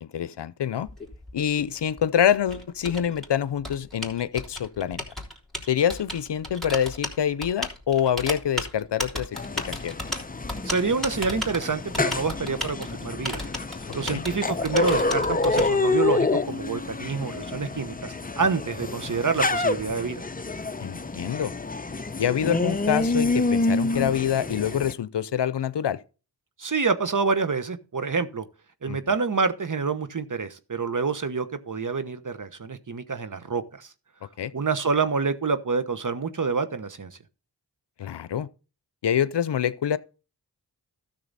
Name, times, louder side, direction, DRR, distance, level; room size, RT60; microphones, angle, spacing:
voice 1, 0.0-0.9 1.3-5.0 5.7-9.9 14.1-14.2 20.8-21.5 22.2-26.0 28.9-29.0 34.4-34.5 38.0-38.5 39.0-40.0, left 9 dB, 70° left, 0.7 m, -26 dB
Typing, 0.8-15.6, equal, ahead, 3.5 m, -34 dB
sound 1, 9.3-24.9, left 3 dB, 20° left, 0.7 m, -28 dB
voice 2, 10.6-13.4 13.9-20.2 26.6-28.4 28.8-33.9 34.5-37.2, right 4 dB, 45° right, 1.2 m, -27 dB
13.0 x 6.7 x 4.1 m
cardioid pair, 40°, 43 cm